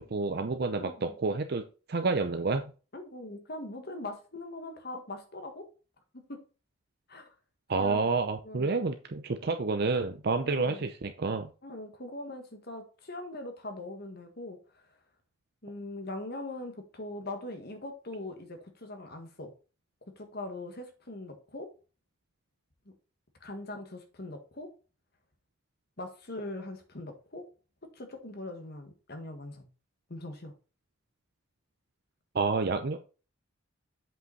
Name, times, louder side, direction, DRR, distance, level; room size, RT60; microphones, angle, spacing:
voice 1, 0.0-1.6 1.9-2.6 7.7-11.5 32.3-33.0, right 4 dB, 55° right, 0.6 m, -29 dB
voice 2, 0.7-1.1 2.9-5.7 6.1-6.4 7.1-7.3 7.8-8.1 8.4-8.7 10.4-10.8 11.6-14.8 15.6-19.5 20.2-21.7 23.4-24.7 26.0-27.4 27.9-29.7 30.1-30.5, left 2 dB, 55° left, 1.7 m, -41 dB
7.8 x 5.5 x 4.1 m
head